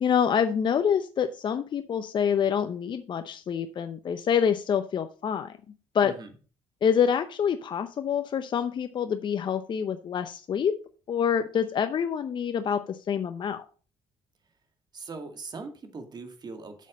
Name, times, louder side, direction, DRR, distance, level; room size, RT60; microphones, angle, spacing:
voice 1, 0.0-5.5 5.9-6.1 6.8-10.8 11.1-13.6, left 7 dB, 50° left, 9 dB, 0.7 m, -26 dB
voice 2, 6.0-6.3 14.9-16.9, right 4 dB, 40° right, 7 dB, 2.1 m, -41 dB
8.1 x 6.5 x 5.1 m, 0.37 s
supercardioid pair, 80°, 10 cm